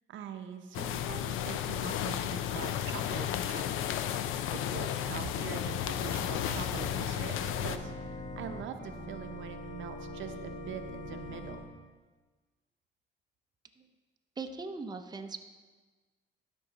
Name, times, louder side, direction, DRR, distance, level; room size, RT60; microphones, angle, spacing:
voice 1, 0.1-3.9 4.5-11.6, right 8 dB, 75° right, 8 dB, 0.7 m, -43 dB
sound 1, 0.7-7.8, left 10 dB, 90° left, 0.5 m, -33 dB
Organ, 5.8-11.6, left 1 dB, 35° left, 1.9 m, -42 dB
voice 2, 14.4-15.4, right 4 dB, 20° right, 6 dB, 0.6 m, -39 dB
12.0 x 5.5 x 4.0 m, 1.4 s
cardioid pair, 90°, 20 cm